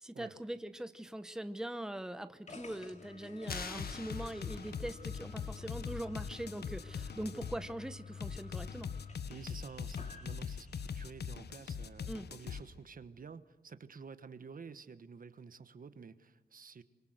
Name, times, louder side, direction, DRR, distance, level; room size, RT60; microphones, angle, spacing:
voice 1, 0.0-8.9 12.1-12.3, right 1 dB, 5° right, 11 dB, 0.9 m, -42 dB
sound 1, 2.5-11.2, left 5 dB, 45° left, 2.7 m, -51 dB
sound 2, 3.5-7.6 8.2-12.6, left 6 dB, 85° left, 1.1 m, -41 dB
sound 3, 3.5-5.0, left 5 dB, 65° left, 1.9 m, -46 dB
voice 2, 9.3-16.8, right 5 dB, 55° right, 12 dB, 1.2 m, -51 dB
25.5 x 23.0 x 8.0 m, 1.2 s
wide cardioid pair, 110°, 17 cm